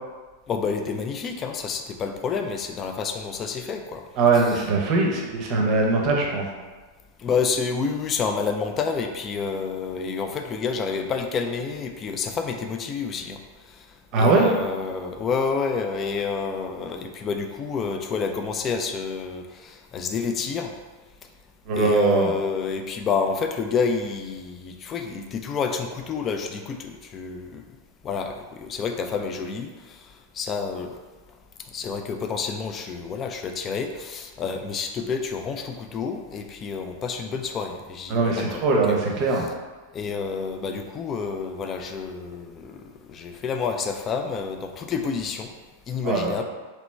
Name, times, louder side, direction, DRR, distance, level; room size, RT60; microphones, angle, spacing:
voice 1, 0.5-4.0 7.2-13.4 14.2-20.7 21.7-27.6 28.0-30.0 30.3-30.9 31.7-39.0 39.4-39.5 39.9-45.5 45.9-46.4, left 5 dB, 25° left, 5 dB, 0.4 m, -29 dB
voice 2, 4.2-6.5 14.1-14.5 21.7-22.3 38.1-39.5 46.0-46.4, right 3 dB, 40° right, -1 dB, 0.7 m, -21 dB
3.1 x 3.0 x 3.1 m, 1.3 s
figure-of-eight pair, 90°, 0 cm